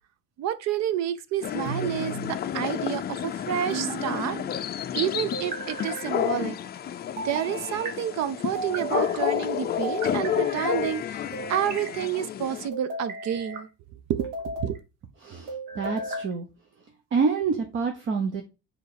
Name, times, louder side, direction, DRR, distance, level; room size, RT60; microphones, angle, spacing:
voice 1, 0.4-4.7 4.9-6.6 7.2-13.7 14.1-14.3 14.6-14.8, right 10 dB, 60° right, 0.7 m, -29 dB
sound 1, 1.4-12.7, left 10 dB, 30° left, 0.5 m, -30 dB
sound 2, 1.7-2.3 3.7-4.5 5.3-6.1 7.2-7.9 8.5-9.2 9.8-10.7 11.3-12.0 12.7-13.6 14.2-14.8 15.5-16.3, right 3 dB, 85° right, 1.8 m, -35 dB
voice 2, 15.2-16.5 17.1-18.4, right 5 dB, 40° right, 1.0 m, -27 dB
4.7 x 4.6 x 5.0 m
cardioid pair, 130°, 31 cm